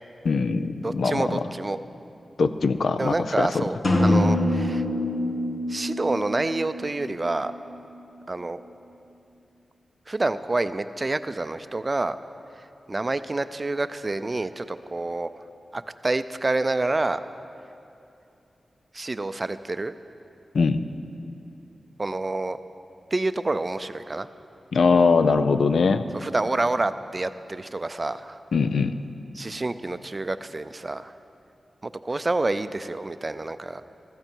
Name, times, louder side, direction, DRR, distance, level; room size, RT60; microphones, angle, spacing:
voice 1, 0.2-1.4 2.4-3.6 20.5-20.9 24.7-26.0 28.5-29.0, left 4 dB, 80° left, 11 dB, 0.5 m, -22 dB
voice 2, 0.8-1.8 3.0-3.8 4.0-4.8 5.7-7.5 8.3-8.6 10.1-12.2 12.9-15.3 15.7-17.2 18.9-20.0 22.0-22.6 23.1-24.3 26.1-28.4 29.4-31.1 31.8-33.8, right 2 dB, 30° right, 12 dB, 0.5 m, -28 dB
sound 1, 3.8-7.6, left 1 dB, 60° left, 1.6 m, -25 dB
15.0 x 14.0 x 4.6 m, 2.7 s
wide cardioid pair, 90°, 0 cm